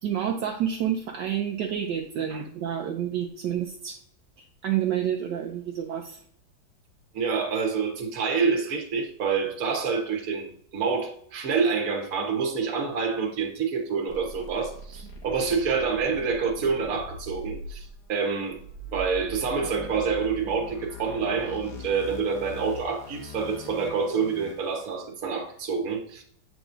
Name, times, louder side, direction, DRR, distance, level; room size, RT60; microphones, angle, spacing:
voice 1, 0.0-4.0 4.6-6.2, right 9 dB, 70° right, 2 dB, 1.2 m, -29 dB
voice 2, 7.1-18.6 18.9-26.2, right 5 dB, 50° right, 2 dB, 1.4 m, -27 dB
sound 1, 14.1-24.9, left 1 dB, 65° left, 1.5 m, -42 dB
8.1 x 4.8 x 2.6 m, 0.64 s
omnidirectional pair, 2.1 m